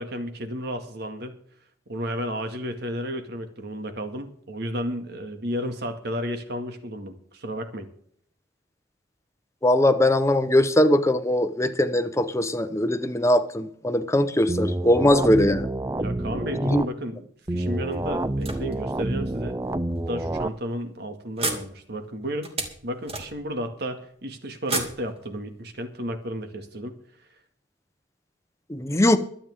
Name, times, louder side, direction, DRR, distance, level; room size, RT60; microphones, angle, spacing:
voice 1, 0.0-1.4 1.9-7.9 15.9-17.2 17.5-19.6 20.1-22.5 22.8-27.0, equal, 60° right, 2.1 m, -32 dB
voice 2, 9.6-15.7 16.6-16.8 28.7-29.2, left 1 dB, 15° left, 1.0 m, -21 dB
sound 1, 14.5-16.9 17.5-20.5, right 1 dB, 20° right, 0.5 m, -28 dB
sound 2, 17.9-19.2 20.0-20.1 20.4-20.6 21.4-23.7 24.6-25.8, right 2 dB, 35° right, 2.6 m, -33 dB
24.0 x 9.0 x 3.7 m
head